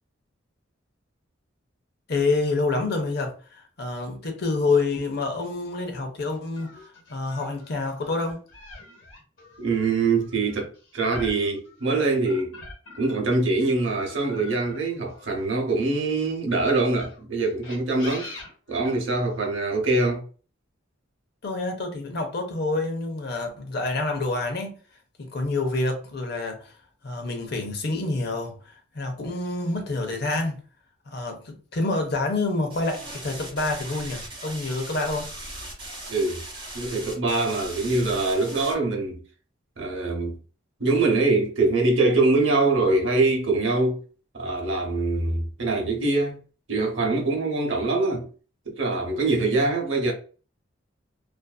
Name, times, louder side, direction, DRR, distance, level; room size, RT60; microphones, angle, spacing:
voice 1, 2.1-8.4 21.4-24.8 25.2-26.7 27.0-28.6 28.9-30.6 31.1-35.3, left 3 dB, 55° left, 0.6 m, -27 dB
sound 1, 6.5-13.3 13.8-16.1 16.8-19.5, left 2 dB, 70° left, 1.1 m, -44 dB
voice 2, 9.6-12.6 13.0-18.3 18.7-20.2 36.1-36.4 36.7-39.2 39.8-40.4 40.8-44.0 44.3-46.4 46.7-48.3 48.7-50.1, right 3 dB, 70° right, 0.7 m, -24 dB
sound 2, 32.7-38.7, right 1 dB, 25° right, 1.1 m, -39 dB
2.5 x 2.4 x 2.3 m
head